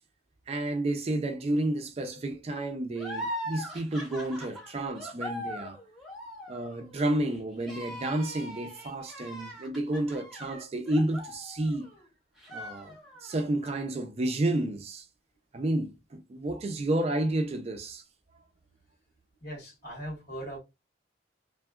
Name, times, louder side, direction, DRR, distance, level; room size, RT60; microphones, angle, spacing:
voice 1, 0.5-5.8 6.5-11.9 12.5-13.0 13.2-15.0 15.5-18.0, right 1 dB, 35° right, 0.4 m, -31 dB
sound 1, 2.9-12.0 12.4-13.4, equal, ahead, 0.8 m, -41 dB
voice 2, 19.4-20.6, right 1 dB, 55° left, 1.4 m, -39 dB
2.7 x 2.3 x 2.2 m
head